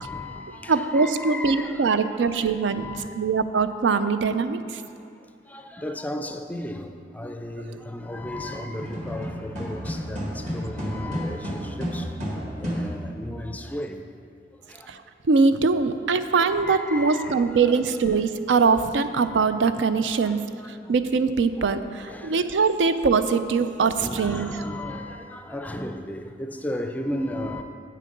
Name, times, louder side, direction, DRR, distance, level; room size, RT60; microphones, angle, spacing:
voice 1, 0.0-3.2 4.9-5.0 5.5-14.1 14.7-14.9 16.4-18.3 19.2-19.5 20.2-20.9 21.6-21.7 22.0-23.0 23.8-27.6, left 1 dB, 10° left, 0.4 m, -35 dB
voice 2, 0.7-2.8 3.1-4.8 14.9-15.0 15.3-20.4 20.7-24.5, right 4 dB, 85° right, 0.4 m, -22 dB
sound 1, 8.7-13.4, equal, 40° right, 1.8 m, -31 dB
8.6 x 6.6 x 5.2 m
head